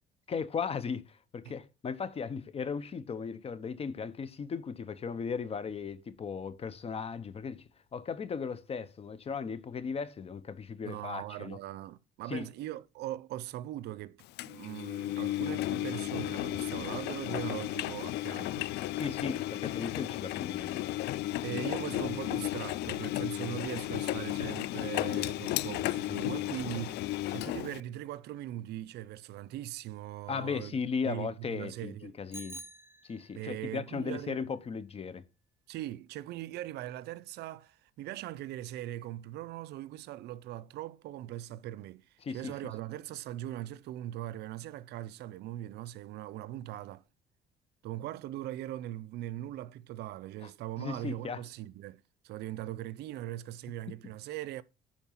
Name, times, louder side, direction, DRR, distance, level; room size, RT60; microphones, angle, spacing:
voice 1, 0.3-7.6 7.9-11.6 12.3-12.5 18.9-20.9 30.3-32.6 33.0-35.2 42.2-42.6 50.4-50.5 50.8-51.4, left 5 dB, 35° left, 1.0 m, -36 dB
voice 2, 10.8-18.7 21.4-30.8 31.0-32.1 33.3-34.5 35.7-47.0 47.8-54.6, right 13 dB, 75° right, 0.6 m, -40 dB
Engine, 14.4-27.8, left 15 dB, 80° left, 0.5 m, -34 dB
Bicycle bell, 32.3-33.6, right 2 dB, 15° right, 0.6 m, -47 dB
10.5 x 4.4 x 5.7 m
cardioid pair, 110°, 17 cm